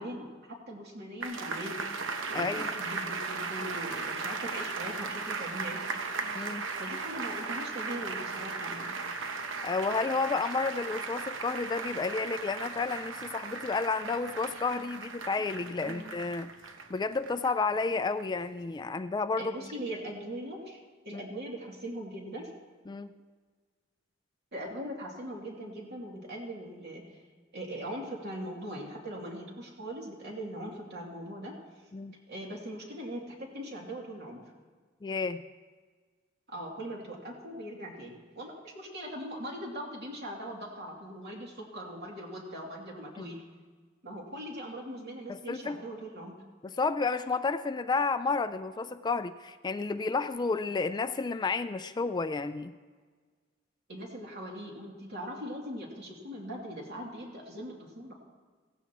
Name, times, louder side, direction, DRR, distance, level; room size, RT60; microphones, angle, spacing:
voice 1, 0.0-1.8 2.3-5.8 6.8-8.9 15.8-16.1 19.4-20.8 21.0-22.5 24.5-27.2 27.5-31.5 32.3-34.4 36.5-43.4 44.0-46.4 53.9-58.2, equal, 60° right, -2 dB, 2.8 m, -40 dB
sound 1, 1.2-17.7 18.2-18.3, right 4 dB, 80° right, 1.0 m, -37 dB
voice 2, 2.3-2.7 6.3-6.6 9.6-16.5 16.9-19.5 21.1-21.2 22.9-23.1 31.9-32.1 35.0-35.4 43.2-43.3 45.3-45.8 46.6-52.7, left 4 dB, 20° left, 11 dB, 0.3 m, -31 dB
16.5 x 15.0 x 3.0 m, 1.5 s
head